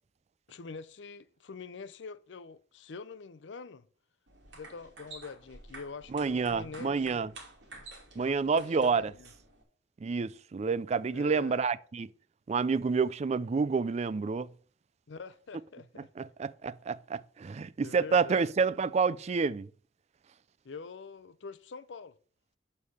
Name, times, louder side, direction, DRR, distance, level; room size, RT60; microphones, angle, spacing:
voice 1, 0.5-3.9 4.5-7.3 8.2-9.3 11.1-11.6 15.1-16.1 17.8-18.7 20.6-22.1, left 5 dB, 85° left, 0.6 m, -45 dB
sound 1, 4.3-9.6, right 2 dB, 85° right, 2.7 m, -51 dB
voice 2, 6.1-7.3 8.2-9.0 10.0-12.1 12.5-14.5 16.2-19.7, right 5 dB, 40° right, 0.4 m, -29 dB
6.4 x 5.4 x 6.3 m
head